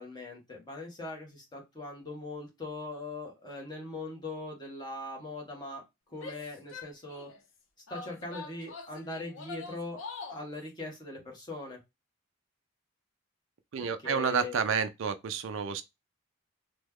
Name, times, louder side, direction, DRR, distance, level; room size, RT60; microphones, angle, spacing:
voice 1, 0.0-5.8 6.1-7.3 7.9-10.0 10.3-11.8 14.0-14.6, left 2 dB, 20° left, 1.1 m, -40 dB
Female speech woman speaking / Yell, 6.1-7.4 7.9-10.5, left 4 dB, 75° left, 0.7 m, -44 dB
voice 2, 13.7-15.8, right 6 dB, 65° right, 0.4 m, -30 dB
3.1 x 2.2 x 3.5 m
head